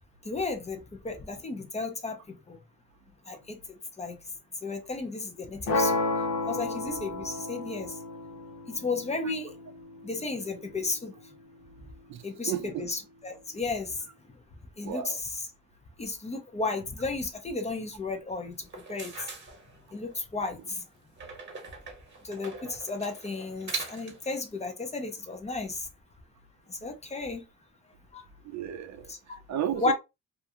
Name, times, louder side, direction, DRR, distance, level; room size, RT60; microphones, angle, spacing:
voice 1, 0.2-2.6 3.3-3.6 4.0-4.2 4.6-6.0 6.5-7.9 8.7-9.6 10.0-11.1 12.2-14.0 14.8-15.4 16.0-19.3 19.9-20.8 22.2-25.9 26.7-27.4 28.1-28.2 29.1-29.2 29.8-29.9, left 3 dB, 20° left, 0.5 m, -33 dB
sound 1, 5.7-11.7, left 2 dB, 75° left, 0.7 m, -33 dB
voice 2, 12.1-12.9 14.8-15.2 28.4-29.9, right 10 dB, 60° right, 0.4 m, -34 dB
sound 2, 18.6-20.2 21.2-24.3, right 4 dB, 35° right, 1.0 m, -41 dB
2.4 x 2.2 x 2.7 m
cardioid pair, 115°, 32 cm